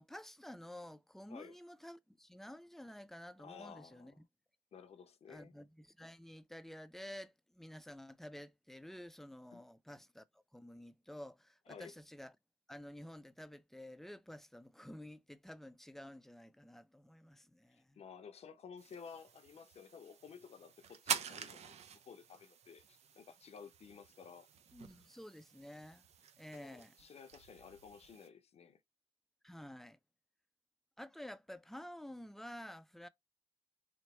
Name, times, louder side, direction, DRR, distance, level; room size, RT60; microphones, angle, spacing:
voice 1, 0.0-4.2 5.3-12.3 12.7-18.0 24.7-26.1 26.4-26.9 29.4-30.0 31.0-33.1, left 1 dB, 5° left, 0.4 m, -51 dB
voice 2, 3.4-4.2 4.7-5.5 9.5-9.7 11.7-11.9 17.7-24.5 26.5-28.8, left 6 dB, 70° left, 0.6 m, -54 dB
sound 1, 18.8-28.3, right 7 dB, 80° right, 0.4 m, -47 dB
3.0 x 2.1 x 4.1 m
cardioid pair, 70°, 11 cm